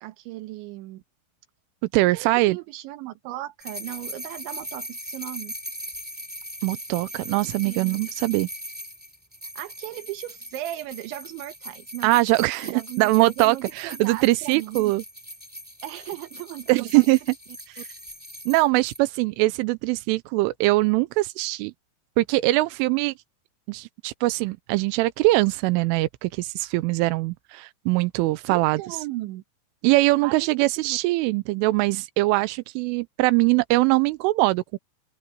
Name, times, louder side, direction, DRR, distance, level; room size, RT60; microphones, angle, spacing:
voice 1, 0.0-1.0 2.1-5.5 7.6-8.1 9.6-12.2 12.6-14.9 15.8-17.3 17.8-17.9 28.5-29.4 30.2-31.0, right 16 dB, 75° right, 3.5 m, -37 dB
voice 2, 1.9-2.6 6.6-8.5 12.0-15.0 16.7-17.2 17.7-17.8 18.5-21.7 22.2-23.1 23.7-28.8 29.8-34.8, right 20 dB, 90° right, 3.2 m, -22 dB
sound 1, 3.6-19.0, equal, 5° right, 2.0 m, -40 dB
open air
omnidirectional pair, 5.7 m